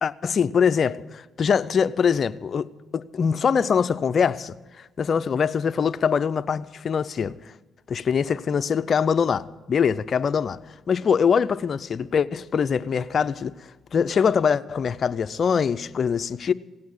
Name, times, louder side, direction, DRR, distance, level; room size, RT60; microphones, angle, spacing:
voice 1, 0.0-2.7 2.9-7.4 7.9-10.6 10.9-13.5 13.9-16.5, left 6 dB, 55° left, 0.6 m, -23 dB
17.0 x 8.6 x 9.8 m
cardioid pair, 70°, 0 cm